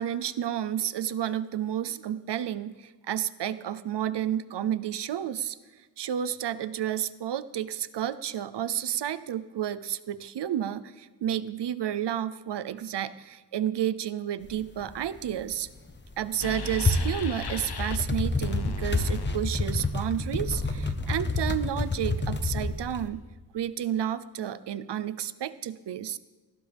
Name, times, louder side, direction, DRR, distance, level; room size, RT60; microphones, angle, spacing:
voice 1, 0.0-5.6 6.0-15.7 16.2-23.2 23.5-26.2, right 10 dB, 75° right, 15 dB, 0.7 m, -31 dB
sound 1, 14.4-14.5 14.8-15.3 15.8-23.1, left 3 dB, 25° left, 1.1 m, -29 dB
sound 2, 16.4-18.0 18.4-20.1, left 3 dB, 65° left, 1.1 m, -37 dB
19.0 x 18.5 x 3.5 m, 1.3 s
wide cardioid pair, 85°, 42 cm